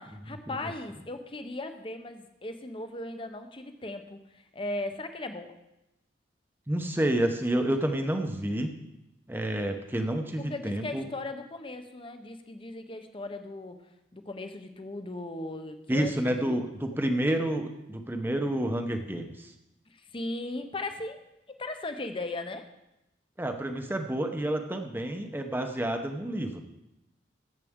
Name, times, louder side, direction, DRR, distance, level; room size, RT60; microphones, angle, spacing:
voice 1, 0.0-5.5 10.4-13.8 14.1-16.6 19.9-21.2 21.5-22.7, left 2 dB, 30° left, 7 dB, 0.8 m, -38 dB
voice 2, 6.7-8.8 9.3-11.1 15.9-19.5 23.4-26.6, right 1 dB, 10° right, 5 dB, 0.8 m, -29 dB
13.5 x 7.4 x 3.6 m, 0.90 s
head